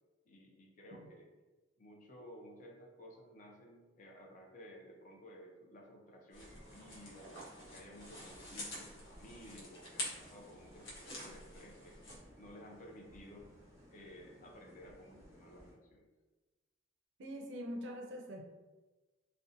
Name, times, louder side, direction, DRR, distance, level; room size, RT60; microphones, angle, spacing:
voice 1, 0.3-1.3 1.8-12.0 12.4-13.5 13.9-16.1, equal, 45° left, 0 dB, 0.4 m, -55 dB
sound 1, 6.3-12.2, left 1 dB, 85° left, 0.8 m, -48 dB
sound 2, 6.4-15.7, equal, 10° right, 1.0 m, -60 dB
voice 2, 17.2-18.4, equal, 75° right, 2 dB, 0.4 m, -44 dB
2.5 x 2.1 x 2.6 m, 1.2 s
head